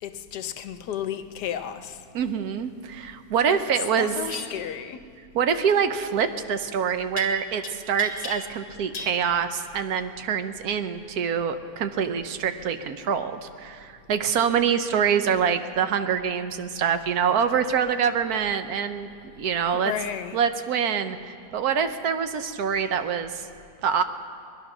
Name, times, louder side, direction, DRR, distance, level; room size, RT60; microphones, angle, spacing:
voice 1, 0.0-2.0 3.5-5.0 19.7-20.4, left 9 dB, 85° left, 1.3 m, -33 dB
voice 2, 2.1-4.1 5.3-19.1 19.4-19.9 20.3-23.5 23.8-24.0, right 7 dB, 70° right, 1.2 m, -25 dB
sound 1, 4.2-4.5 7.2-7.7 8.0-8.7 8.9-9.2, left 4 dB, 50° left, 1.3 m, -36 dB
21.0 x 11.5 x 6.0 m
omnidirectional pair, 1.7 m